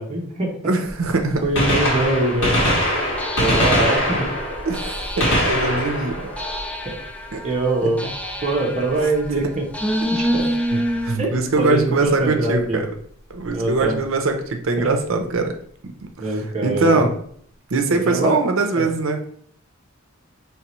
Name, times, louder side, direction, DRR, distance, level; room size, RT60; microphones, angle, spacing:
voice 1, 0.0-0.6 1.4-2.6 3.4-4.3 6.8-6.9 7.4-8.0 8.4-9.6 10.0-10.5 11.2-12.8 13.5-14.0 16.2-17.0 17.9-18.4 18.7-18.9, right 2 dB, 35° right, -1 dB, 0.8 m, -23 dB
voice 2, 0.6-1.4 4.6-6.3 7.3-7.4 7.8-8.1 10.7-12.9 13.3-15.5 15.8-15.9 16.2-17.2 17.7-19.3, right 3 dB, 80° right, 5 dB, 0.6 m, -22 dB
Gunshot gunfire, 1.5-7.3 9.2-9.3 10.4-10.5 12.0-12.1 13.5-13.6 13.8-13.9, equal, 65° left, 1.8 m, -22 dB
sound 1, 3.2-11.2, equal, 5° left, 0.4 m, -28 dB
4.6 x 3.2 x 3.0 m, 0.63 s
head